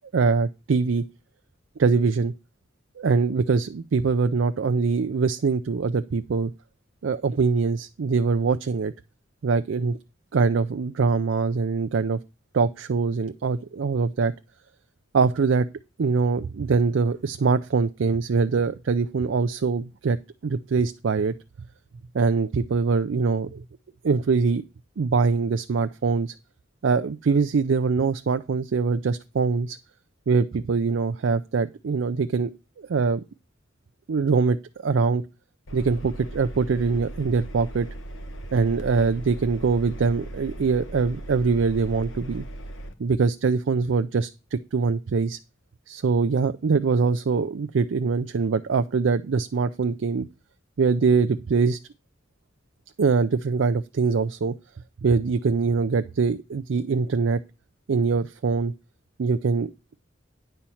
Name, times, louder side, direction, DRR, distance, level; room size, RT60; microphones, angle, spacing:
voice 1, 0.1-1.0 1.8-2.3 3.0-6.5 7.0-8.9 9.4-10.0 10.3-12.2 12.5-14.3 15.1-15.7 16.0-20.2 20.4-21.3 22.1-23.6 24.0-24.6 25.0-26.3 26.8-29.8 30.3-32.5 32.8-33.2 34.1-34.6 34.8-35.2 35.7-37.9 38.5-42.4 43.0-45.4 45.9-50.3 50.8-51.8 53.0-54.5 55.0-57.4 57.9-58.7 59.2-59.7, right 4 dB, 65° right, 10 dB, 0.4 m, -23 dB
Engine, 35.7-42.9, right 1 dB, 80° left, 1.2 m, -38 dB
10.0 x 4.4 x 7.0 m, 0.30 s
head